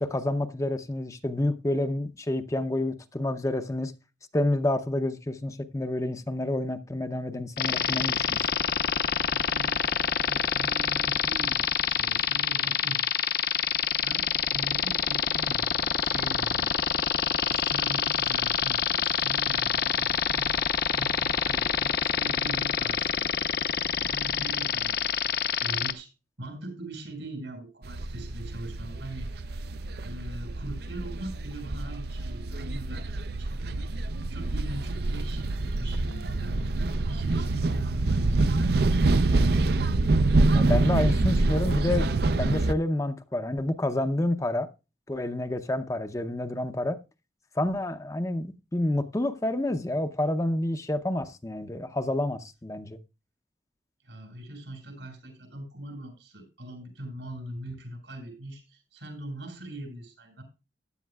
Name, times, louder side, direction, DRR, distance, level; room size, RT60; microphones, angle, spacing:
voice 1, 0.0-3.9 4.3-8.4 40.5-44.7 45.1-47.0 47.6-53.0, left 1 dB, 20° left, 0.6 m, -29 dB
sound 1, 7.6-25.9, left 7 dB, 60° left, 0.8 m, -26 dB
voice 2, 9.3-13.7 14.0-16.7 17.5-25.3 25.6-26.1 26.4-29.5 30.0-33.9 34.3-39.5 54.0-60.4, right 1 dB, 85° right, 6.2 m, -42 dB
sound 2, 27.8-42.7, right 2 dB, 60° right, 0.5 m, -26 dB
15.0 x 10.0 x 2.3 m
head